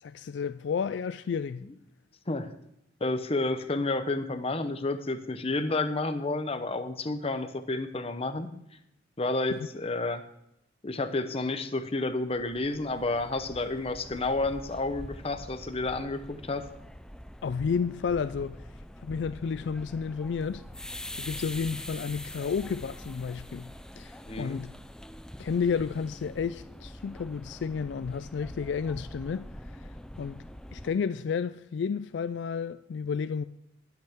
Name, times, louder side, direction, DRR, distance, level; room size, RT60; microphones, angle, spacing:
voice 1, 0.0-1.7 17.4-18.6 19.0-23.7 24.0-24.7 25.4-29.9 30.2-30.4 30.7-33.4, left 6 dB, 70° left, 0.3 m, -32 dB
voice 2, 3.0-8.5 9.2-10.2 10.8-16.7 24.3-24.6, left 2 dB, 35° left, 0.8 m, -30 dB
sound 1, 12.2-30.9, left 1 dB, 5° left, 0.4 m, -44 dB
19.0 x 8.2 x 3.6 m
head